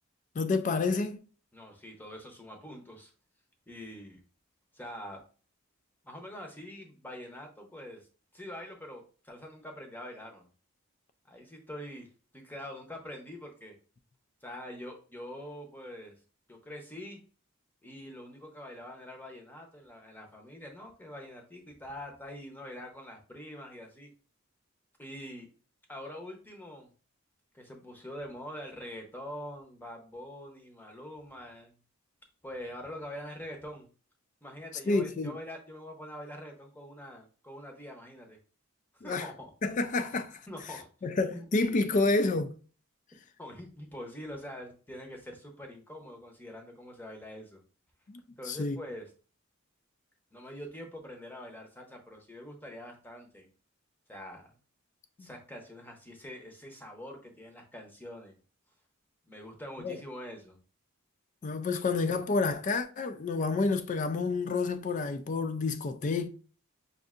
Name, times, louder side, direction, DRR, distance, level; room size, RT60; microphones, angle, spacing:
voice 1, 0.4-1.2 34.9-35.3 39.0-39.3 39.6-40.4 41.0-42.5 48.1-48.2 48.5-48.8 55.2-55.3 59.8-60.0 61.4-66.3, left 3 dB, 35° left, 0.3 m, -29 dB
voice 2, 1.5-3.1 3.7-4.2 4.7-5.2 6.0-8.1 8.3-10.5 11.3-12.1 12.3-13.7 14.4-16.2 16.5-17.2 17.8-24.1 25.0-25.5 25.9-26.9 27.5-31.7 32.4-33.9 34.4-38.4 38.9-39.5 40.5-40.9 41.3-41.5 43.4-47.6 48.4-49.1 50.3-53.5 54.1-54.6 55.2-58.4 59.3-60.6, left 1 dB, 10° left, 0.7 m, -44 dB
5.3 x 2.6 x 2.4 m
head